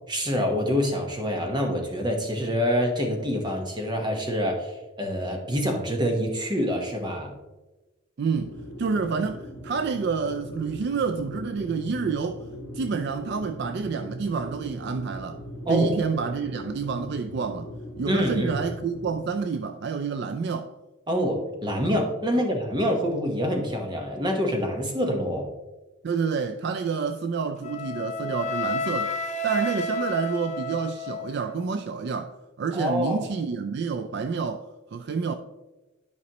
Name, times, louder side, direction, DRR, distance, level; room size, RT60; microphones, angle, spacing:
voice 1, 0.1-4.7 5.0-7.3 15.6-15.9 18.0-18.6 21.1-25.5 32.7-33.2, equal, 20° right, 1.2 m, -26 dB
voice 2, 8.2-12.4 12.7-15.4 15.7-17.7 18.0-20.7 22.3-22.4 26.0-29.1 29.4-34.6 34.9-35.3, right 5 dB, 55° right, 0.4 m, -28 dB
sound 1, 8.3-19.2, left 1 dB, 85° left, 1.1 m, -40 dB
Wind instrument woodwind instrument, 27.6-31.7, left 1 dB, 35° left, 0.5 m, -31 dB
11.0 x 5.3 x 3.0 m
head